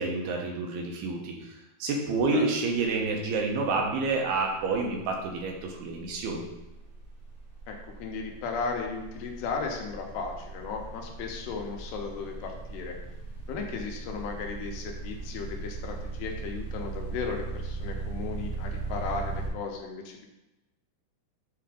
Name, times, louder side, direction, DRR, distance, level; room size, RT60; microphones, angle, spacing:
voice 1, 0.0-6.5, right 3 dB, 80° right, 1 dB, 2.8 m, -29 dB
sound 1, 2.9-3.1 3.3-19.5, right 3 dB, 40° right, 1.7 m, -39 dB
voice 2, 7.7-13.0 13.5-20.3, left 4 dB, 85° left, 2 dB, 3.0 m, -35 dB
7.6 x 3.5 x 4.9 m, 0.99 s
omnidirectional pair, 4.8 m